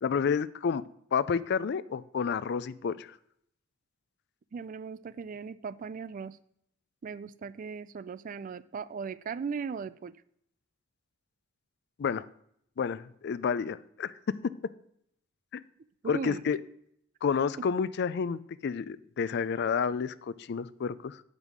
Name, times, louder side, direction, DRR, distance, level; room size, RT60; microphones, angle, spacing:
voice 1, 0.0-0.8 1.1-3.1 12.0-12.2 12.8-14.1 15.5-15.6 16.0-16.6 17.2-21.2, left 6 dB, 55° left, 17 dB, 0.4 m, -30 dB
voice 2, 4.5-6.4 7.0-10.1 16.0-16.4 17.6-17.7, right 5 dB, 40° right, 17 dB, 0.3 m, -38 dB
8.2 x 5.3 x 6.1 m, 0.70 s
head